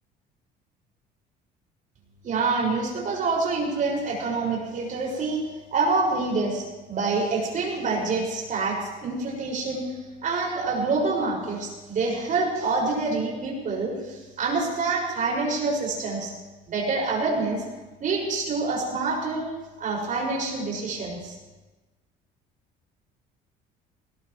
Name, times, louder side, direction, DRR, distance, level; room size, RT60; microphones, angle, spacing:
voice 1, 2.2-5.4 5.7-9.9 10.2-16.3 16.7-17.6 18.0-19.4 19.8-21.3, right 3 dB, 45° right, -2 dB, 6.0 m, -26 dB
20.0 x 19.0 x 3.2 m, 1.2 s
cardioid pair, 120°, 19 cm